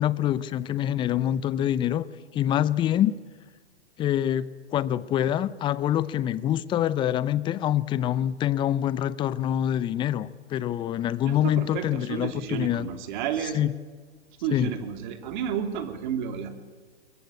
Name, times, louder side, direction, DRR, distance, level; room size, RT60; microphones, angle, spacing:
voice 1, 0.0-2.0 2.3-3.1 4.0-12.9 13.5-13.7 14.5-14.7, left 11 dB, 15° left, 0.6 m, -25 dB
voice 2, 11.2-13.6 14.4-16.5, right 8 dB, 45° right, 3.1 m, -31 dB
22.0 x 22.0 x 8.6 m
hypercardioid pair, 120°, 32 cm